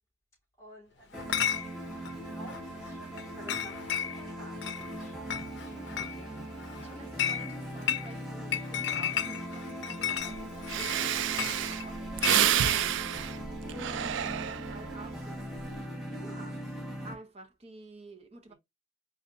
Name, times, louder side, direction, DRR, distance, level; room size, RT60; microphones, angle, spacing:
voice 1, 0.6-1.4 1.7-7.0 13.3-13.7 18.5-18.6, equal, 15° left, 2.8 m, -53 dB
Chatter / Chink clink, 1.1-12.8, left 9 dB, 65° left, 0.5 m, -35 dB
sound 1, 1.1-17.1, right 1 dB, ahead, 1.1 m, -40 dB
voice 2, 5.6-5.9 6.8-13.2 13.7-15.4 15.7-16.6 17.0-18.5, right 1 dB, 30° right, 0.8 m, -50 dB
Breathing, 10.3-10.4 10.7-14.9 15.4-15.8, right 10 dB, 75° right, 0.4 m, -29 dB
4.1 x 3.5 x 2.6 m
head